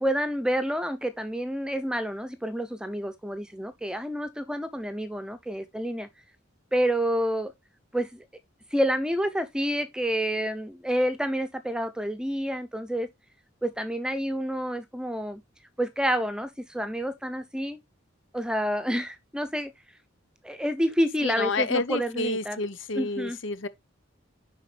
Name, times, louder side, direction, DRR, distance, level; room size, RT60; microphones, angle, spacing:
voice 1, 0.0-6.1 6.7-7.5 7.9-8.3 8.7-13.1 13.6-15.4 15.8-17.8 18.3-19.7 20.4-22.6 23.0-23.4, equal, 5° right, 0.8 m, -28 dB
voice 2, 21.2-23.7, left 3 dB, 70° left, 0.8 m, -29 dB
10.5 x 4.3 x 3.4 m
head